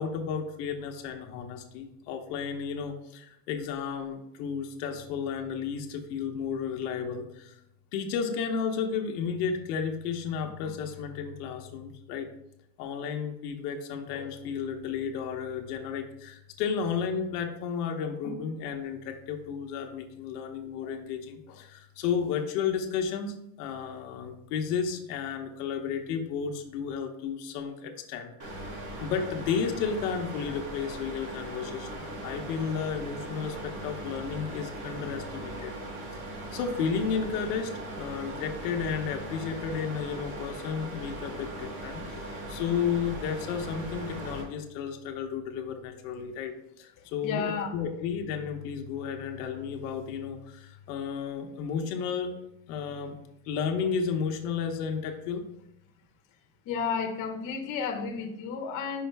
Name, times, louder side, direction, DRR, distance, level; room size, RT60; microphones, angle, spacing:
voice 1, 0.0-7.5 7.9-12.3 12.8-35.7 36.5-52.3 52.7-53.2 53.4-55.4, left 6 dB, 85° left, 3 dB, 1.0 m, -33 dB
Room Ambience Fan High, 28.4-44.4, right 1 dB, 40° right, 2.1 m, -39 dB
voice 2, 47.0-47.7 56.6-59.0, left 6 dB, 45° left, 2 dB, 1.0 m, -32 dB
5.6 x 5.0 x 3.4 m, 0.84 s
supercardioid pair, 140°, 45 cm